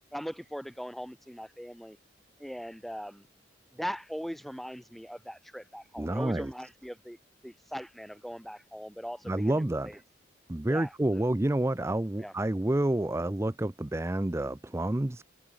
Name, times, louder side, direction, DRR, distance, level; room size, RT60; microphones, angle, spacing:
voice 1, 0.1-2.0 2.4-3.3 3.7-7.2 7.4-10.0 10.7-11.2 12.2-12.3, equal, ahead, 2.5 m, -40 dB
voice 2, 6.0-6.5 9.3-9.9 10.5-15.2, right 1 dB, 15° right, 0.5 m, -29 dB
head